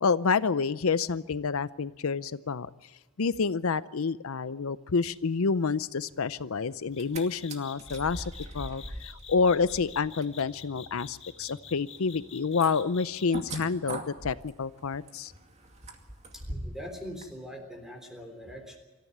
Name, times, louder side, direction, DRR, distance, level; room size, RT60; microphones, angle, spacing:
voice 1, 0.0-2.7 3.2-8.2 8.5-15.3, left 5 dB, 75° left, 15 dB, 0.6 m, -28 dB
sound 1, 5.0-5.3 6.9-13.4, left 7 dB, 30° left, 3.2 m, -47 dB
sound 2, 6.8-7.2 7.5-16.9 17.2-17.3, right 1 dB, 30° right, 2.3 m, -42 dB
voice 2, 16.3-18.8, equal, ahead, 5 dB, 3.6 m, -42 dB
25.0 x 14.5 x 9.2 m, 1.2 s
head